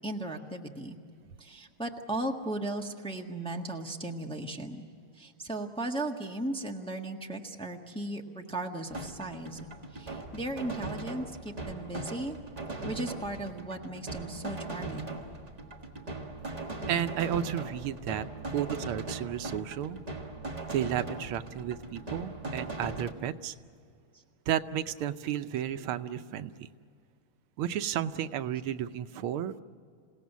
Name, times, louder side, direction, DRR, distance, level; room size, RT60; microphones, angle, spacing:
voice 1, 0.0-1.0 1.4-4.9 5.1-12.4 12.8-15.1 24.1-24.2, right 1 dB, 5° left, 1 dB, 1.1 m, -36 dB
sound 1, 8.9-23.1, right 2 dB, 20° right, 1.4 m, -39 dB
voice 2, 16.9-18.3 18.5-20.0 20.7-23.6 24.5-26.7 27.6-29.5, right 10 dB, 90° right, 11 dB, 1.7 m, -32 dB
28.0 x 17.5 x 8.2 m, 2.3 s
omnidirectional pair, 2.3 m